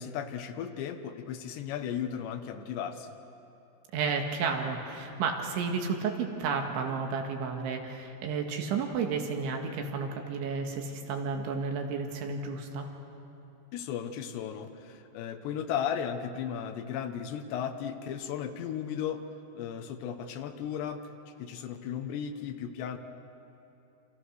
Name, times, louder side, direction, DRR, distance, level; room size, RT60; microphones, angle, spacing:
voice 1, 0.0-3.1 13.7-19.2 19.6-21.1 21.4-23.0, left 8 dB, 75° left, 7 dB, 3.3 m, -35 dB
voice 2, 3.9-12.9, right 5 dB, 85° right, 3 dB, 4.3 m, -32 dB
28.0 x 27.5 x 6.5 m, 2.9 s
omnidirectional pair, 5.3 m